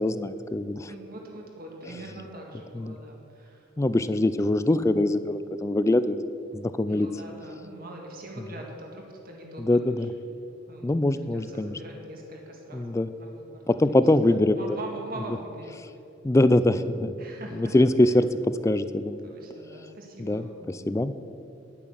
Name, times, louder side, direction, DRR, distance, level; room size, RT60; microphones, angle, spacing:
voice 1, 0.0-0.9 2.8-3.0 3.8-6.2 6.5-7.1 9.6-10.1 10.8-11.7 12.7-13.1 13.7-14.6 16.2-17.1 17.6-19.2 20.2-20.4 20.9-21.1, left 1 dB, 15° left, 13 dB, 0.3 m, -23 dB
voice 2, 0.9-3.7 6.9-10.2 10.7-11.0 11.3-14.0 14.6-16.0 17.2-17.8 18.0-18.2 19.2-21.0, right 1 dB, 50° right, 0 dB, 1.8 m, -43 dB
10.0 x 8.9 x 6.3 m, 2.6 s
head